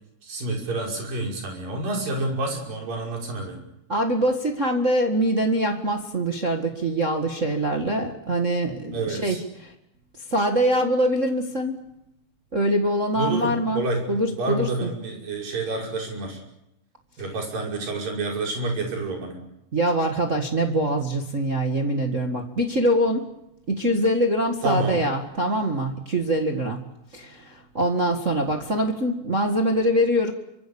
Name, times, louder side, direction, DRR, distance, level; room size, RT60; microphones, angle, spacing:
voice 1, 0.2-3.6 8.9-9.4 13.1-14.0 14.3-16.4 17.2-19.4 24.6-25.0, right 2 dB, 55° right, 1 dB, 7.3 m, -28 dB
voice 2, 3.9-9.7 10.3-11.8 12.5-13.8 14.1-14.9 19.7-23.3 23.7-26.8 27.1-30.3, right 1 dB, 75° right, 3 dB, 0.7 m, -24 dB
28.5 x 25.0 x 7.1 m, 0.85 s
omnidirectional pair, 4.9 m